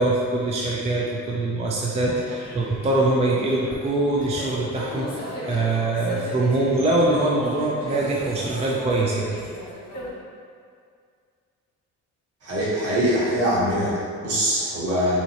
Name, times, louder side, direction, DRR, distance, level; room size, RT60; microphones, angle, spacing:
voice 1, 0.0-9.4, right 2 dB, 20° right, -4 dB, 0.4 m, -23 dB
sound 1, 2.1-10.1, equal, 55° left, 1.2 m, -37 dB
voice 2, 12.4-15.2, equal, 55° right, -8 dB, 1.4 m, -23 dB
4.0 x 2.8 x 2.8 m, 2.2 s
cardioid pair, 90°, 30 cm